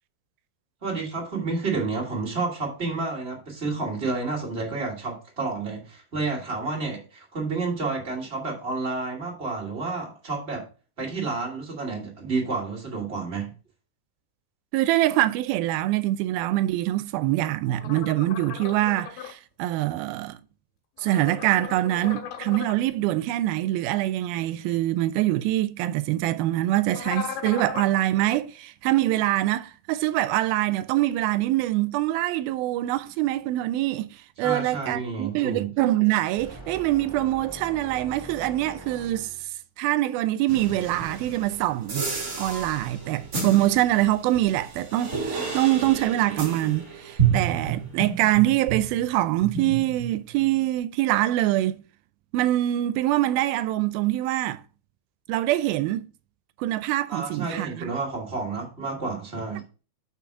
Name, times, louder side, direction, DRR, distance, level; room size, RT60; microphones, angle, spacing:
voice 1, 0.8-10.6 11.0-13.5 34.4-35.7 57.1-59.6, right 3 dB, 20° right, 2.1 m, -30 dB
voice 2, 14.7-20.4 21.0-39.3 39.8-42.1 42.4-51.8 52.3-54.6 55.3-56.1 56.6-57.9, right 15 dB, 80° right, 2.3 m, -24 dB
sound 1, 17.8-19.3 21.0-22.8 26.9-28.0, left 8 dB, 85° left, 3.2 m, -37 dB
sound 2, 36.4-39.6, right 1 dB, 10° left, 1.5 m, -43 dB
sound 3, 40.5-49.1 49.4-50.5, right 6 dB, 40° right, 1.3 m, -31 dB
6.1 x 6.0 x 4.9 m
omnidirectional pair, 4.4 m